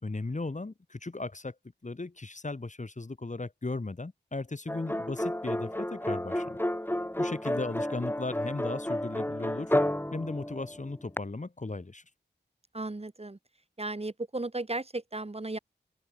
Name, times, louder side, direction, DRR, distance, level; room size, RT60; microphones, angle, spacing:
voice 1, 0.0-1.6 1.8-6.6 7.2-9.7 10.1-12.0, left 3 dB, 40° left, 3.3 m, -36 dB
sound 1, 4.7-11.2, left 1 dB, 10° left, 6.3 m, -31 dB
voice 2, 12.7-13.4 13.8-15.6, right 2 dB, 35° right, 3.3 m, -35 dB
open air
wide cardioid pair, 65°, 19 cm